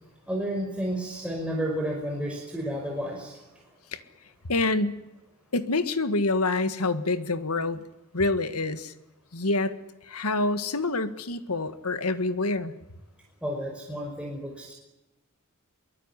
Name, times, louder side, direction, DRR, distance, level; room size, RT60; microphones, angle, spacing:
voice 1, 0.3-3.6 13.4-14.7, equal, 5° right, -2 dB, 5.3 m, -31 dB
voice 2, 4.4-5.0 5.5-7.8 8.1-8.9 9.3-9.8 10.1-12.7, left 2 dB, 75° left, 11 dB, 1.8 m, -26 dB
23.5 x 22.0 x 9.9 m, 0.98 s
head